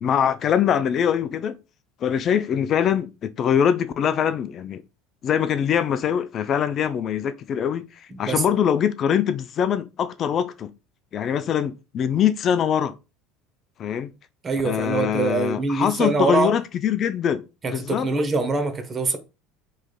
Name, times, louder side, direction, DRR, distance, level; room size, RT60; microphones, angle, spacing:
voice 1, 0.0-1.6 2.0-4.8 5.2-10.7 11.1-13.0 13.8-14.1 14.6-18.1, left 8 dB, 45° left, 0.3 m, -23 dB
voice 2, 8.1-8.4 14.4-16.6 17.6-19.2, right 3 dB, 30° right, 0.8 m, -24 dB
3.5 x 3.1 x 2.3 m
hypercardioid pair, 85°, 0 cm